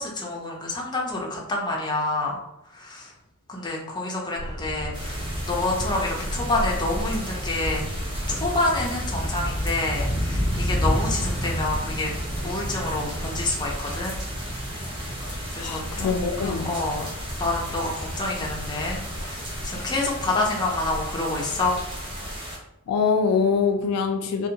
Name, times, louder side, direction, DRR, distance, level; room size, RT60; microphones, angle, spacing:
voice 1, 0.0-2.4 2.7-3.1 3.5-7.8 8.3-12.1 12.4-14.2 15.6-16.1 16.4-17.0 17.4-19.0 19.3-21.8, left 2 dB, 20° left, -2 dB, 0.5 m, -28 dB
sound 1, 4.3-22.4, equal, 75° right, 0.9 m, -37 dB
sound 2, 4.9-22.6, equal, 20° right, 0.7 m, -31 dB
voice 2, 15.6-16.7 22.9-24.5, left 5 dB, 85° left, 6 dB, 0.3 m, -24 dB
2.6 x 2.2 x 2.7 m, 0.88 s
head